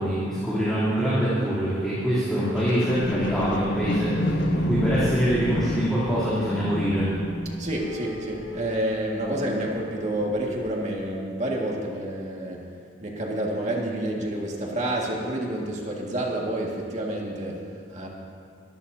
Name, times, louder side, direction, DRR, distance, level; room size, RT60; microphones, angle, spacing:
voice 1, 0.0-7.1, equal, 5° left, -13 dB, 3.3 m, -25 dB
sound 1, 2.6-10.0 10.6-10.7, left 1 dB, 75° left, 1.3 m, -30 dB
voice 2, 7.5-12.7 13.0-18.1, right 1 dB, 40° right, -2 dB, 2.0 m, -29 dB
23.0 x 14.0 x 2.8 m, 2.3 s
head